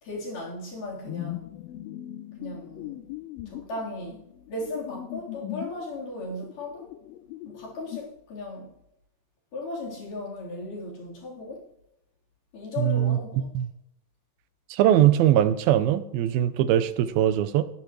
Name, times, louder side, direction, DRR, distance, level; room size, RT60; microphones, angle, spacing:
voice 1, 0.0-1.6 2.4-3.1 3.5-6.9 7.5-8.7 9.5-11.7 12.5-13.5, left 2 dB, 60° left, -5 dB, 5.5 m, -36 dB
sound 1, 1.1-5.9 6.2-8.0, left 15 dB, 85° left, 2.5 m, -39 dB
voice 2, 12.8-13.7 14.7-17.6, right 11 dB, 90° right, 12 dB, 2.6 m, -21 dB
21.0 x 11.5 x 3.2 m, 0.80 s
omnidirectional pair, 4.1 m